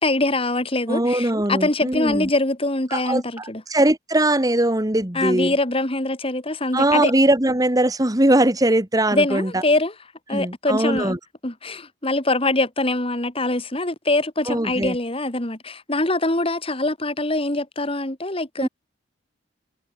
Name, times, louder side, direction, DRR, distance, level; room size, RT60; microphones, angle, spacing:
voice 1, 0.0-3.6 5.1-7.1 9.1-9.9 10.3-11.1 11.4-18.7, left 2 dB, 30° left, 2.5 m, -23 dB
voice 2, 0.9-2.3 2.9-5.5 6.7-9.6 10.3-11.2 14.5-15.0 18.6-18.7, right 1 dB, 20° right, 1.6 m, -20 dB
head